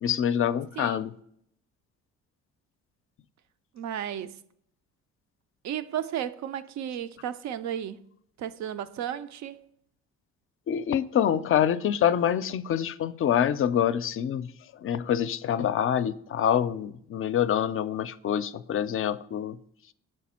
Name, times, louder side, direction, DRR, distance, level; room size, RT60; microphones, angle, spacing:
voice 1, 0.0-1.1 10.7-19.6, left 9 dB, 45° left, 0.4 m, -26 dB
voice 2, 0.8-1.1 3.7-4.4 5.6-8.0 8.4-9.6, right 10 dB, 70° right, 0.5 m, -34 dB
6.4 x 4.2 x 4.2 m
cardioid pair, 75°, 30 cm